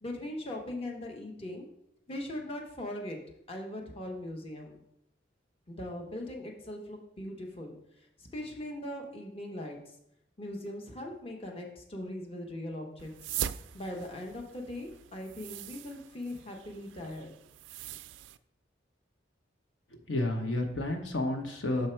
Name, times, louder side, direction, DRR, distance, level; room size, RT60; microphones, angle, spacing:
voice 1, 0.0-1.6 2.1-4.8 5.7-7.8 8.2-9.8 10.4-13.1 13.7-17.3, left 1 dB, 30° left, 1 dB, 1.0 m, -40 dB
sound 1, 13.0-18.4, right 10 dB, 85° right, 0.3 m, -41 dB
voice 2, 19.9-21.9, left 1 dB, 85° left, 4 dB, 1.0 m, -31 dB
6.8 x 4.5 x 4.4 m, 0.77 s
head